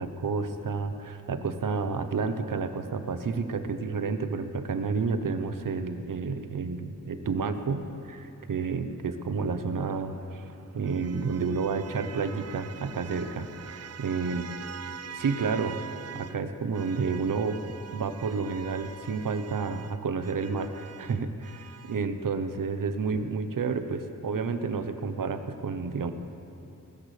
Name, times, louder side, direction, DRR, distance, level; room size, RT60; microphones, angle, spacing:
voice 1, 0.0-10.4 10.7-14.4 15.1-15.8 16.1-17.6 17.9-26.1, right 4 dB, 75° right, 9 dB, 0.9 m, -30 dB
sound 1, 9.8-16.4 16.7-22.1, right 8 dB, 50° right, 0.4 m, -44 dB
20.0 x 13.5 x 3.3 m, 2.7 s
wide cardioid pair, 95°, 33 cm